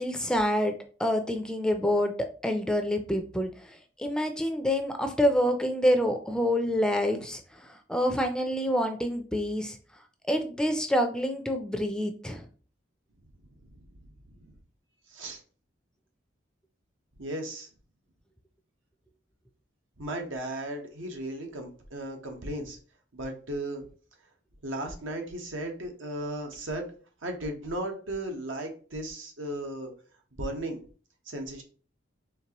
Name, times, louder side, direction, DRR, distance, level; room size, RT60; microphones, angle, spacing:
voice 1, 0.0-12.5, equal, 5° left, 6 dB, 0.4 m, -27 dB
voice 2, 13.4-13.8 14.3-14.5 15.1-15.4 17.2-17.7 20.0-22.8 23.1-23.9 24.6-26.9 27.2-29.9 30.3-30.8 31.3-31.6, right 1 dB, 85° right, 3 dB, 1.1 m, -36 dB
4.5 x 3.2 x 2.9 m, 0.39 s
head